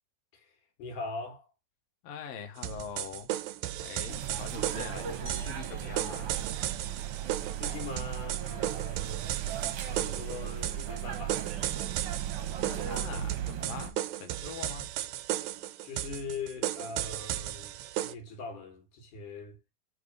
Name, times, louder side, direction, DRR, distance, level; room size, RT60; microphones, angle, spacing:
voice 1, 0.3-1.5 4.2-4.4 7.6-9.4 9.8-11.5 15.8-19.6, left 3 dB, 85° left, 3.2 m, -41 dB
voice 2, 2.0-3.3 3.8-6.3 12.6-14.9, left 7 dB, 65° left, 2.1 m, -43 dB
sound 1, 2.6-18.1, right 13 dB, 80° right, 1.7 m, -35 dB
sound 2, 4.1-13.9, right 10 dB, 60° right, 1.7 m, -37 dB
sound 3, 5.3-7.7, right 2 dB, 30° right, 1.0 m, -50 dB
5.3 x 4.1 x 5.3 m
omnidirectional pair, 3.5 m